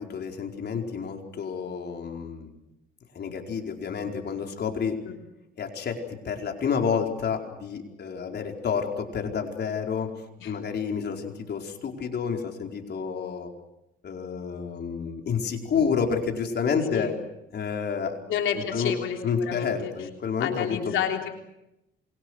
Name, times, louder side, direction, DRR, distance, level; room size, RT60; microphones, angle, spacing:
voice 1, 0.0-2.5 3.1-5.0 5.6-10.1 10.4-13.5 14.0-17.1 17.5-18.2 18.7-18.9 19.2-21.0, left 6 dB, 55° left, 3 dB, 4.7 m, -29 dB
voice 2, 18.3-20.1 20.4-21.3, left 9 dB, 80° left, 3 dB, 3.5 m, -30 dB
27.5 x 23.0 x 6.5 m, 0.88 s
cardioid pair, 90°, 20 cm